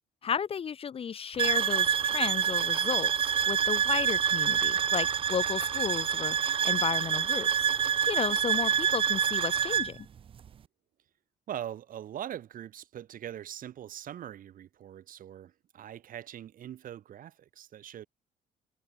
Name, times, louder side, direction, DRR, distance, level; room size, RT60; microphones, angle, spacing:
voice 1, 0.2-6.4 6.6-7.7 8.1-10.0, left 7 dB, 35° left, 0.6 m, -33 dB
sound 1, 1.4-9.9, right 8 dB, 30° right, 0.4 m, -27 dB
voice 2, 11.5-18.1, right 11 dB, 55° right, 1.7 m, -42 dB
cardioid pair, 110°, 17 cm